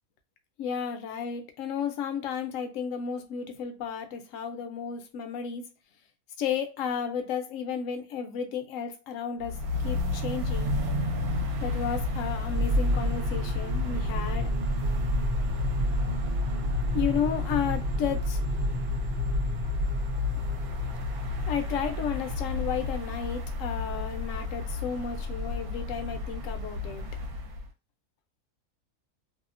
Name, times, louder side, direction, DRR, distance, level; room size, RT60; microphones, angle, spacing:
voice 1, 0.6-5.6 6.4-10.7 11.6-14.5 16.9-18.4 21.5-27.1, left 7 dB, 65° left, 0.8 m, -33 dB
sound 1, 9.4-27.7, left 2 dB, 75° right, 1.1 m, -32 dB
sound 2, 12.5-23.0, equal, 55° right, 1.1 m, -30 dB
2.7 x 2.0 x 2.4 m
omnidirectional pair, 1.7 m